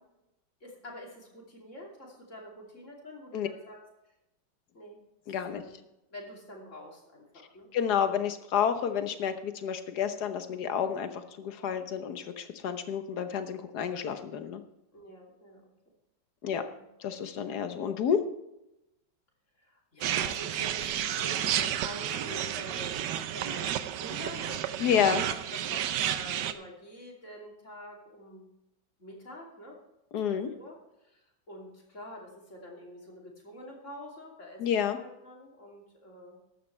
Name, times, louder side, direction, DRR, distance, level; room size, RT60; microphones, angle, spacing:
voice 1, 0.6-3.8 4.7-5.0 5.5-5.8 6.1-7.7 14.9-15.7 16.7-16.9 19.6-24.9 25.5-28.5 29.0-29.8 30.3-30.8 31.0-31.2 31.5-36.4, equal, 40° left, -2 dB, 3.2 m, -46 dB
voice 2, 5.3-5.6 7.7-14.6 16.4-16.6 17.0-18.2 24.8-25.2 30.1-30.5 34.6-35.0, left 8 dB, 65° left, 9 dB, 1.5 m, -29 dB
sound 1, 20.0-26.5, right 10 dB, 75° right, 1.3 m, -31 dB
14.0 x 11.5 x 3.3 m, 0.90 s
omnidirectional pair, 1.9 m